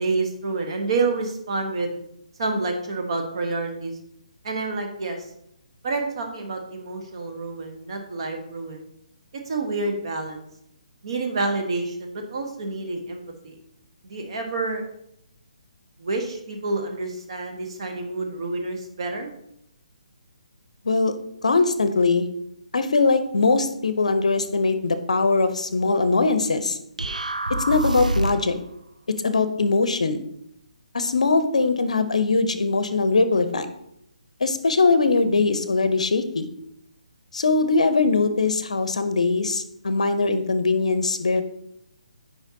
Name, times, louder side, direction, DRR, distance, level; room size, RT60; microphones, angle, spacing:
voice 1, 0.0-1.9 2.4-3.9 4.4-5.2 5.8-8.9 9.5-10.4 11.0-13.6 14.0-14.8 16.0-19.3, right 3 dB, 45° right, 3 dB, 1.0 m, -28 dB
voice 2, 21.4-22.3 22.7-26.8 27.5-28.6 29.2-30.2 30.9-33.7 34.4-36.5 37.3-41.4, left 3 dB, 60° left, 11 dB, 0.6 m, -21 dB
sound 1, 27.0-28.6, right 2 dB, 80° right, 0.4 m, -26 dB
8.0 x 5.2 x 2.7 m, 0.76 s
figure-of-eight pair, 140°, 4 cm